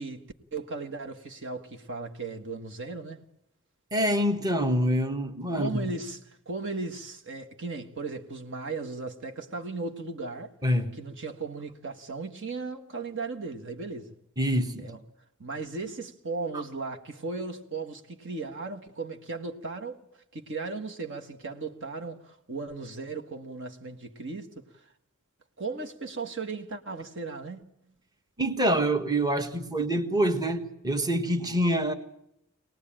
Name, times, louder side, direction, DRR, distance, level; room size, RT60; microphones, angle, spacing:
voice 1, 0.0-3.2 5.5-10.5 11.0-14.1 14.8-15.0 15.4-20.1 20.3-24.6 25.6-27.6, right 3 dB, 60° right, 1.7 m, -36 dB
voice 2, 3.9-5.9 10.6-11.0 14.4-14.9 28.4-31.9, right 1 dB, 20° right, 1.5 m, -26 dB
24.5 x 19.0 x 8.9 m
head